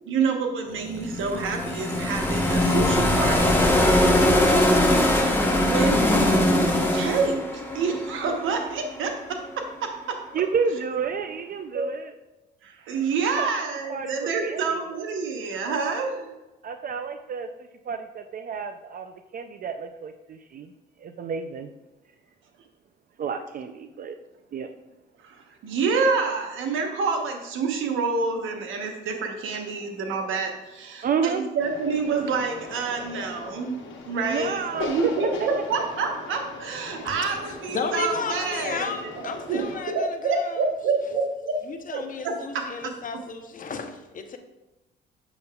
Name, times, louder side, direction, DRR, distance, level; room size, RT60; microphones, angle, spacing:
voice 1, 0.1-3.7 5.6-6.0 6.9-10.2 11.7-11.9 12.6-16.3 25.2-33.8 34.0-41.6 41.9-42.9, right 4 dB, 80° right, 4 dB, 1.0 m, -28 dB
sound 1, 0.8-8.9, left 1 dB, 10° left, 1.1 m, -21 dB
voice 2, 10.3-12.1 13.3-13.5 13.9-14.1 14.4-14.6 16.6-17.5 17.8-20.7 21.0-21.7 23.2-24.2 24.5-24.7 31.0-31.5 34.3-35.1, right 6 dB, 45° right, 8 dB, 0.4 m, -30 dB
sound 2, 31.6-39.8, left 3 dB, 80° left, 1.2 m, -38 dB
voice 3, 37.7-40.6 41.6-44.4, left 5 dB, 45° left, 7 dB, 0.7 m, -33 dB
7.0 x 6.5 x 2.3 m, 1.0 s
cardioid pair, 90°, 20 cm